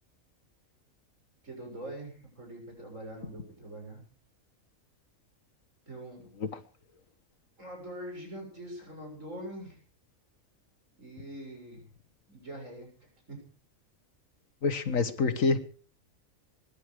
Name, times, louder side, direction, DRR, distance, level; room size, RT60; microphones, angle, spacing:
voice 1, 1.4-4.0 5.9-6.3 7.6-9.8 11.0-11.8 12.3-13.4, right 1 dB, 65° right, 1 dB, 7.8 m, -43 dB
voice 2, 14.6-15.6, left 4 dB, 70° left, 9 dB, 1.8 m, -26 dB
24.0 x 11.5 x 4.9 m, 0.40 s
omnidirectional pair, 1.4 m